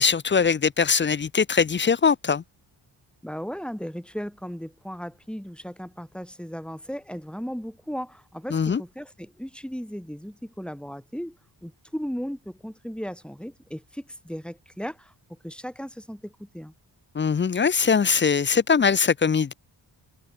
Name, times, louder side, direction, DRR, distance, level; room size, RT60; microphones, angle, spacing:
voice 1, 0.0-2.4 8.5-8.8 17.1-19.5, left 6 dB, 25° left, 0.4 m, -21 dB
voice 2, 3.2-16.7, equal, ahead, 5.2 m, -36 dB
cardioid pair, 45°, 48 cm